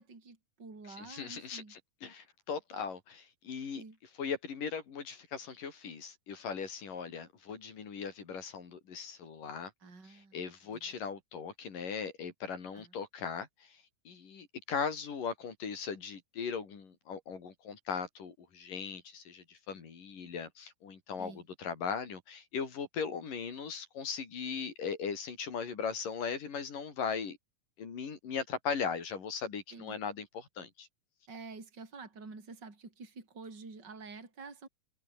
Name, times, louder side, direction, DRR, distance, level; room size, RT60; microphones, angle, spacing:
voice 1, 0.0-1.7 3.8-4.0 9.8-10.4 10.7-10.8 12.7-12.9 21.2-21.4 29.7-30.0 31.3-34.7, right 4 dB, 30° right, 5.4 m, -48 dB
voice 2, 0.9-3.8 4.2-9.7 10.1-27.4 27.8-30.9, left 6 dB, 65° left, 5.3 m, -39 dB
omnidirectional pair, 4.2 m